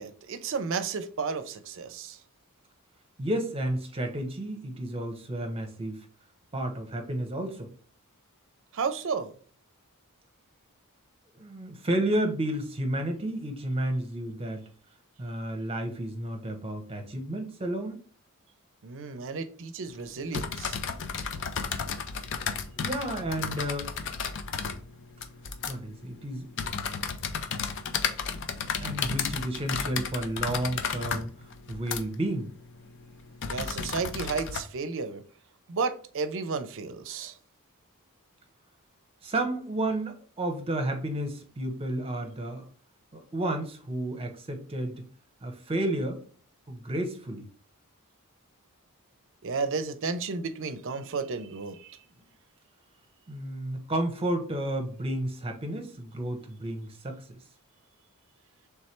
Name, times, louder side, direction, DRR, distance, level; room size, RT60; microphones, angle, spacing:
voice 1, 0.0-2.2 8.7-9.3 18.8-20.8 33.5-35.2 35.7-37.4 49.4-52.0, right 4 dB, 60° right, 0.5 m, -32 dB
voice 2, 3.2-6.0 6.5-7.7 11.3-14.6 15.2-18.0 22.7-23.9 25.7-26.5 28.8-32.5 39.2-42.7 43.1-45.0 45.4-46.2 46.7-47.5 53.3-57.4, right 1 dB, 25° right, 0.8 m, -31 dB
sound 1, 19.9-34.6, left 6 dB, 55° left, 0.5 m, -34 dB
3.4 x 3.2 x 4.3 m
head